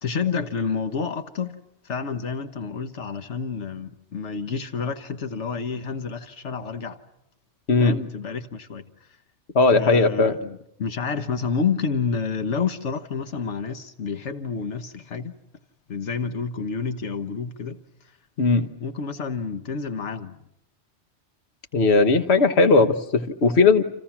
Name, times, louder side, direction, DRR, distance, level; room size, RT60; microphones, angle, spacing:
voice 1, 0.0-1.6 1.8-7.0 7.8-9.2 9.7-15.3 15.9-17.8 18.8-20.4, left 5 dB, 90° left, 1.5 m, -29 dB
voice 2, 7.7-8.0 9.5-10.3 18.4-18.7 21.7-23.8, left 3 dB, 70° left, 1.6 m, -18 dB
29.5 x 28.0 x 6.0 m
omnidirectional pair, 1.2 m